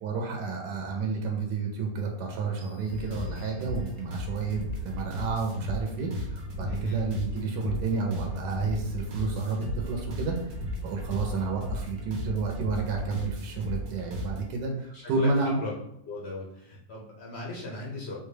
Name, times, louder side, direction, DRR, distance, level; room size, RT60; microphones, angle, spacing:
voice 1, 0.0-10.4 10.8-15.6, right 4 dB, 75° right, 2 dB, 1.1 m, -30 dB
sound 1, 2.6-4.3, left 4 dB, 25° right, 0.6 m, -59 dB
sound 2, 2.9-14.5, left 1 dB, 55° right, 0.9 m, -35 dB
voice 2, 6.7-7.0 14.9-15.7 16.0-18.2, left 2 dB, 70° left, -4 dB, 0.6 m, -38 dB
3.9 x 2.2 x 3.2 m, 0.79 s
omnidirectional pair, 2.0 m